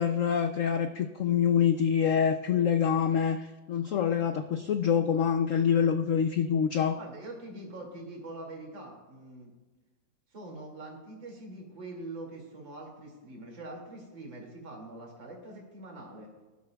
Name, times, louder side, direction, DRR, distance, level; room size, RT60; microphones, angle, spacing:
voice 1, 0.0-7.0, left 7 dB, 80° left, 7 dB, 0.7 m, -26 dB
voice 2, 6.9-9.5 10.3-16.3, right 2 dB, 75° right, 0 dB, 3.2 m, -44 dB
19.5 x 11.5 x 2.3 m, 1.2 s
omnidirectional pair, 2.0 m